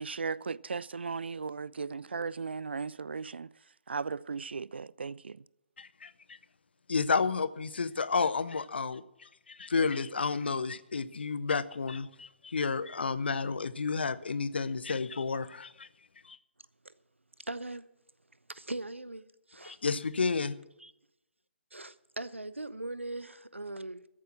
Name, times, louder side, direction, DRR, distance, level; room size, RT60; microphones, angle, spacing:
voice 1, 0.0-3.5 3.9-5.4, right 5 dB, 60° right, 0.4 m, -36 dB
voice 2, 5.8-6.4 6.9-15.9 16.2-16.4 19.6-20.5, left 4 dB, 60° left, 0.7 m, -31 dB
voice 3, 17.4-17.9 18.5-19.8 20.8-20.9 21.7-24.1, right 2 dB, 85° right, 0.8 m, -40 dB
13.5 x 8.4 x 7.4 m
figure-of-eight pair, 135°, 6 cm